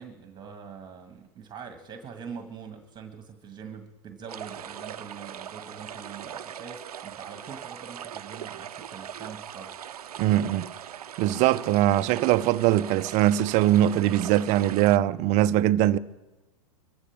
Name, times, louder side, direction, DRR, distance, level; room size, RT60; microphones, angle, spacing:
voice 1, 0.0-9.7, right 6 dB, 25° right, 1.7 m, -43 dB
sound 1, 4.3-15.0, right 9 dB, 80° right, 0.7 m, -40 dB
voice 2, 10.2-10.7 11.2-16.0, right 13 dB, 40° right, 0.7 m, -22 dB
24.0 x 15.0 x 3.5 m
hypercardioid pair, 110°, 19 cm